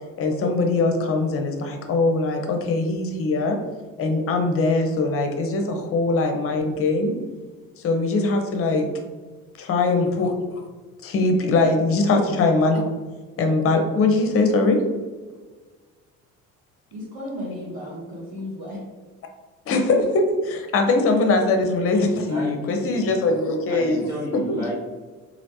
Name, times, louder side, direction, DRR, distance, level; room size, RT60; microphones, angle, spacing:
voice 1, 0.2-3.6 4.0-7.2 7.8-8.9 9.6-10.6 11.0-12.8 13.4-14.8 19.7-24.0 24.5-24.6, left 3 dB, 30° left, 4 dB, 0.6 m, -21 dB
voice 2, 16.9-18.8, equal, 50° right, -6 dB, 0.9 m, -33 dB
voice 3, 21.9-22.5 22.8-23.1 23.7-24.7, left 1 dB, 85° right, -9 dB, 1.1 m, -33 dB
3.1 x 2.6 x 2.8 m, 1.4 s
figure-of-eight pair, 55°, 44 cm